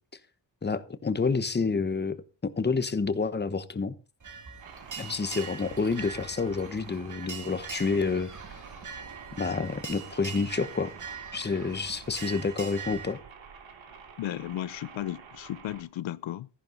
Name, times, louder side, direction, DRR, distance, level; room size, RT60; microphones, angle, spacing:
voice 1, 0.6-2.2 2.4-3.9 5.0-8.3 9.4-10.9 11.3-13.2, left 4 dB, 25° left, 1.0 m, -29 dB
sound 1, 4.2-13.1, right 6 dB, 40° right, 2.3 m, -42 dB
sound 2, 4.6-15.8, right 6 dB, 80° right, 2.9 m, -48 dB
voice 2, 14.2-16.5, left 12 dB, 85° left, 0.6 m, -35 dB
14.0 x 10.5 x 3.9 m
wide cardioid pair, 140°, 45 cm